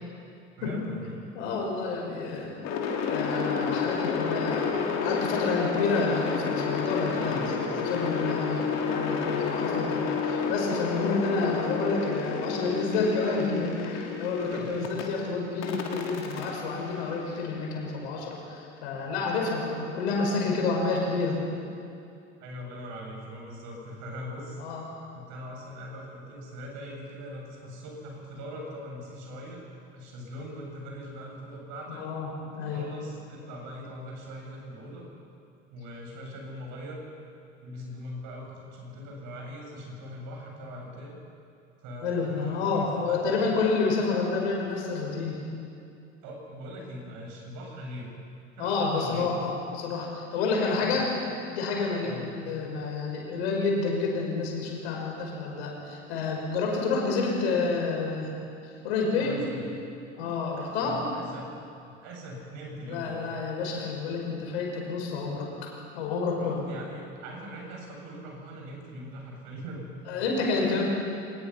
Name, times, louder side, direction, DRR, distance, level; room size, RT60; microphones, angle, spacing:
voice 1, 0.6-1.2 7.2-7.5 14.5-15.1 22.4-24.6 25.1-29.6 29.9-32.0 32.6-35.1 35.7-37.0 37.6-41.2 41.8-43.4 46.2-48.1 48.5-49.3 50.7-51.1 52.0-52.3 59.2-59.7 60.7-61.5 61.8-63.2 66.4-70.2, equal, 50° right, -1 dB, 7.2 m, -41 dB
voice 2, 1.3-2.6 3.1-7.4 7.8-21.4 24.6-24.8 31.9-32.8 42.0-45.4 48.6-51.1 51.5-58.3 58.8-59.4 60.1-61.0 62.9-66.6 70.1-70.8, left 4 dB, 60° left, 0 dB, 5.6 m, -29 dB
sound 1, 2.6-15.0 15.6-17.7, left 5 dB, 45° left, 3.5 m, -30 dB
24.0 x 20.5 x 5.9 m, 2.5 s
figure-of-eight pair, 75°, 37 cm